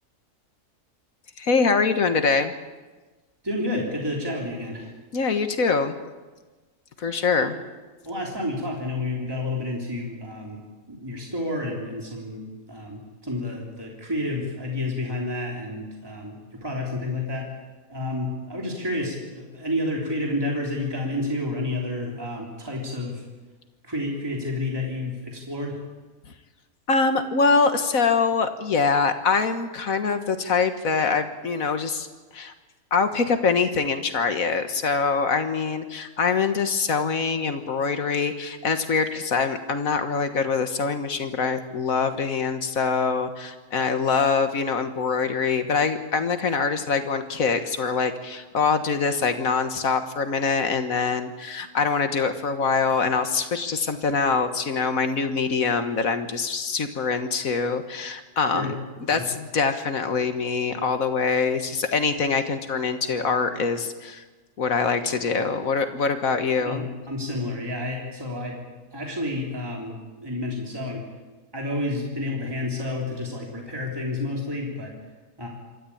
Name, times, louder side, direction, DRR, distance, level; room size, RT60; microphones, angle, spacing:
voice 1, 1.4-2.5 5.1-6.0 7.0-7.6 26.9-32.1 32.3-32.5 32.9-58.8 59.1-64.2 64.6-66.9, left 5 dB, 65° left, 8 dB, 1.8 m, -24 dB
voice 2, 3.4-4.9 7.4-7.5 8.0-10.6 10.9-17.5 17.9-23.2 23.8-25.8 58.5-58.7 59.1-59.2 66.6-68.6 68.9-70.0 70.2-71.0 71.5-74.9 75.4-75.5, left 2 dB, 15° right, -1 dB, 3.5 m, -30 dB
26.0 x 13.5 x 8.6 m, 1.2 s
omnidirectional pair, 1.5 m